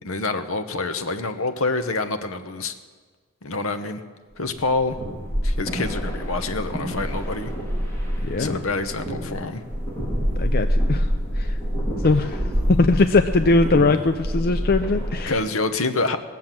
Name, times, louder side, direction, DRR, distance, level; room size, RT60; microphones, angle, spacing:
voice 1, 0.0-2.7 3.4-4.0 4.4-5.0 5.4-7.5 8.4-9.6 15.3-16.2, left 3 dB, 70° left, 9 dB, 1.0 m, -26 dB
sound 1, 4.6-15.4, equal, 10° left, 3.6 m, -26 dB
voice 2, 8.2-8.5 10.4-11.1 11.4-11.5 12.0-12.4 12.7-15.3, left 3 dB, 45° left, 8 dB, 0.5 m, -20 dB
19.0 x 7.4 x 7.5 m, 1.5 s
head